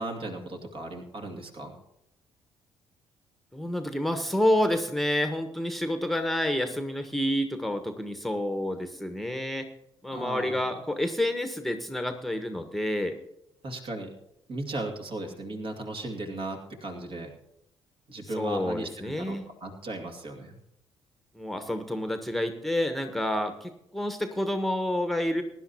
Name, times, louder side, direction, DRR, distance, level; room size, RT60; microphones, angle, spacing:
voice 1, 0.0-1.8 10.1-10.6 13.6-14.1 14.5-17.3 18.1-20.6, right 2 dB, 45° right, 3 dB, 2.4 m, -36 dB
voice 2, 3.5-9.7 10.0-13.2 18.3-19.5 21.3-25.4, left 1 dB, ahead, 7 dB, 1.4 m, -29 dB
22.5 x 11.5 x 2.9 m, 0.81 s
figure-of-eight pair, 45°, 12 cm